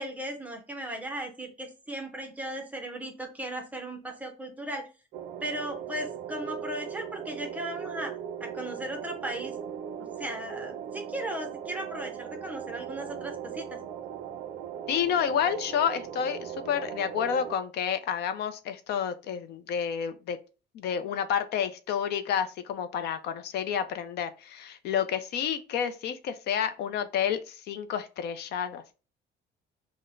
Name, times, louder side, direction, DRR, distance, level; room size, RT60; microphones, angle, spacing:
voice 1, 0.0-4.9 5.4-9.5 10.2-13.8, right 1 dB, 10° right, 0.6 m, -37 dB
sound 1, 5.1-17.6, right 8 dB, 55° right, 0.4 m, -39 dB
voice 2, 14.9-20.4 20.7-28.9, left 8 dB, 65° left, 0.4 m, -30 dB
5.7 x 2.1 x 2.5 m
cardioid pair, 165°, 18 cm